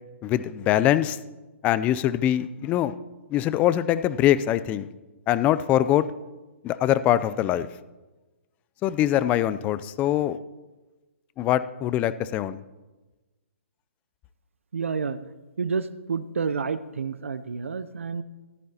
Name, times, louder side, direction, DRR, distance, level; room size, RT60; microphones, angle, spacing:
voice 1, 0.2-1.2 1.6-2.9 3.3-4.9 5.3-6.1 6.6-7.7 8.8-10.4 11.4-12.6, left 12 dB, 20° left, 15 dB, 0.4 m, -23 dB
voice 2, 14.7-15.2 15.6-18.2, right 5 dB, 75° right, 15 dB, 0.6 m, -29 dB
14.0 x 11.5 x 2.8 m, 1.2 s
figure-of-eight pair, 130°, 7 cm